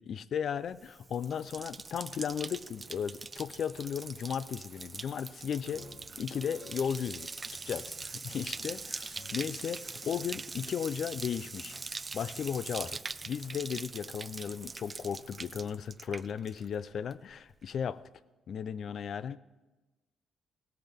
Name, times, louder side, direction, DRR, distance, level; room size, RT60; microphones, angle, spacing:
voice 1, 0.0-5.9 6.2-11.8 12.1-13.0 13.3-18.0 18.5-19.4, left 8 dB, 60° left, 16 dB, 0.5 m, -35 dB
Bathtub (filling or washing), 0.7-16.8 17.1-17.6, right 4 dB, 30° right, 0.4 m, -43 dB
sound 1, 5.6-10.6, left 5 dB, 85° left, 1.5 m, -55 dB
16.0 x 13.5 x 3.6 m, 1.2 s
cardioid pair, 90°, 0 cm